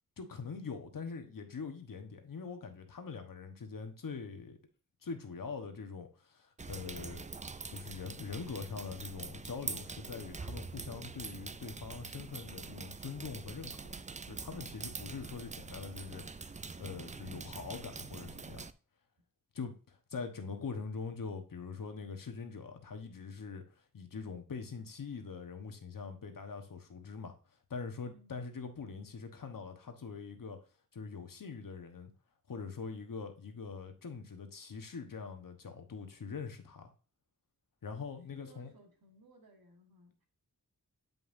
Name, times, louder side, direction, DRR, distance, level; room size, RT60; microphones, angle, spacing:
voice 1, 0.2-4.6 5.0-7.3 7.7-13.9 14.2-18.6 19.5-23.6 23.9-27.4 27.7-30.6 30.9-32.1 32.5-36.9 37.8-38.7, left 5 dB, 70° left, 1.2 m, -43 dB
sound 1, 6.6-18.7, right 4 dB, 20° right, 0.4 m, -44 dB
voice 2, 28.0-28.4 38.3-40.3, right 2 dB, 90° right, 1.6 m, -61 dB
7.7 x 5.4 x 2.6 m
wide cardioid pair, 70°, 34 cm